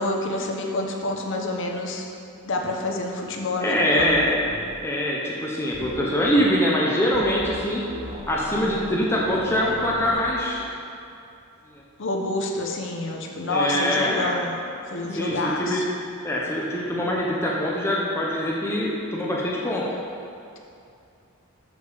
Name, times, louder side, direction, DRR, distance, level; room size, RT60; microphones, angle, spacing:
voice 1, 0.0-2.1 2.4-4.3 12.0-14.6 14.9-15.8, left 2 dB, 60° left, 1 dB, 0.8 m, -28 dB
voice 2, 3.6-4.4 4.8-7.8 8.3-10.6 11.7-11.8 13.5-14.3 15.1-15.8 16.2-19.8, equal, 10° left, -4 dB, 0.7 m, -23 dB
sound 1, 4.0-4.2 4.5-4.7 5.7-6.5 7.1-7.6 7.9-10.4, equal, 30° right, 0.8 m, -38 dB
6.7 x 5.0 x 4.9 m, 2.6 s
head